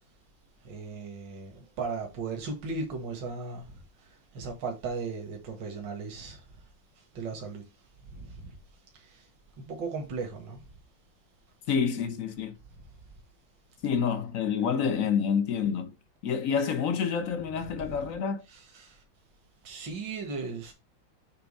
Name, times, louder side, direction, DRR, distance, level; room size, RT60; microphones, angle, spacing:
voice 1, 0.6-6.4 7.1-7.6 8.0-8.6 8.9-9.3 9.6-10.6 17.7-18.0 18.5-19.0 19.6-20.7, right 4 dB, 65° right, 2.2 m, -37 dB
voice 2, 11.7-12.6 13.8-15.9 16.2-18.4, left 6 dB, 50° left, 1.2 m, -28 dB
7.1 x 3.9 x 5.4 m
omnidirectional pair, 2.1 m